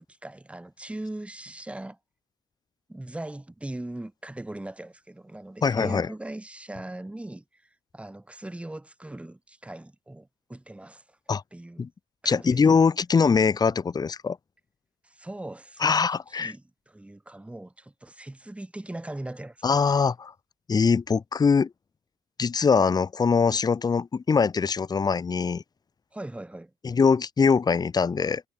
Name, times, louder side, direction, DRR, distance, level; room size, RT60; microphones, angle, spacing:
voice 1, 0.0-2.0 2.9-11.2 11.5-11.8 12.2-12.6 15.0-19.6 26.1-26.7, right 1 dB, 5° right, 1.7 m, -40 dB
voice 2, 5.6-6.1 11.3-11.4 11.8-11.9 12.2-14.4 15.8-16.5 19.6-20.3 20.7-21.7 22.4-25.6 26.8-28.4, left 5 dB, 25° left, 0.8 m, -22 dB
cardioid pair, 110°, 17 cm